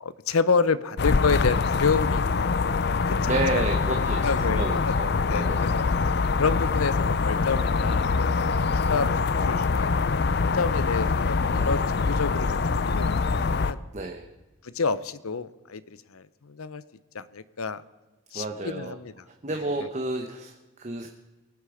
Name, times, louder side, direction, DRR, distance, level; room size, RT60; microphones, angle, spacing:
voice 1, 0.0-2.6 3.1-3.6 3.9-4.9 5.2-5.9 6.4-10.0 10.4-13.2 13.6-13.8 14.6-15.8 16.1-16.8 17.1-17.8 18.3-19.1 19.8-19.9, left 5 dB, 85° left, 16 dB, 0.7 m, -29 dB
sound 1, 1.0-13.7, left 4 dB, 50° left, 0.5 m, -24 dB
voice 2, 3.2-5.6 11.5-11.8 13.9-14.2 18.3-19.0 19.4-21.1, right 2 dB, 35° right, 4 dB, 0.9 m, -31 dB
23.0 x 8.3 x 5.0 m, 1.2 s
head